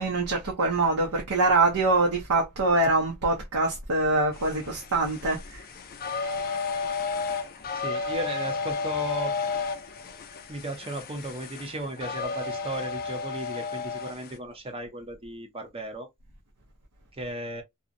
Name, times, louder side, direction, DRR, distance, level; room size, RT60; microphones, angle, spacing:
voice 1, 0.0-5.6, right 2 dB, 75° right, 0.6 m, -24 dB
sound 1, 4.3-14.4, left 5 dB, 40° left, 0.4 m, -33 dB
voice 2, 7.7-9.3 10.5-16.1 17.2-17.6, right 1 dB, 25° right, 0.6 m, -35 dB
2.6 x 2.1 x 2.5 m
head